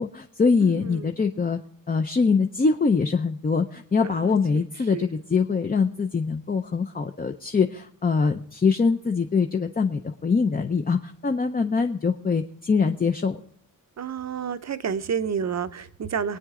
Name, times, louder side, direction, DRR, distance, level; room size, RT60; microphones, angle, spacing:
voice 1, 0.0-1.6 1.9-13.4, left 5 dB, 25° left, 5 dB, 0.5 m, -23 dB
voice 2, 0.6-1.1 4.0-4.3 4.9-5.0 14.0-16.4, right 7 dB, 50° right, 11 dB, 0.7 m, -30 dB
23.5 x 9.3 x 3.7 m, 0.66 s
wide cardioid pair, 160°, 34 cm